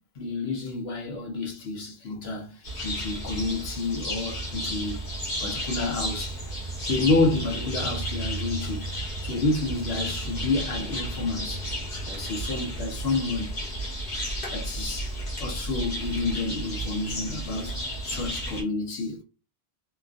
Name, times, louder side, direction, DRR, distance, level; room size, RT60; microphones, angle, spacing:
voice 1, 0.2-5.0 5.4-6.5 6.9-8.8 9.2-11.7 12.1-13.5 14.5-19.2, left 3 dB, 75° left, 1.1 m, -29 dB
sound 1, 2.6-18.6, equal, 55° left, 1.3 m, -33 dB
2.9 x 2.3 x 2.4 m
omnidirectional pair, 1.1 m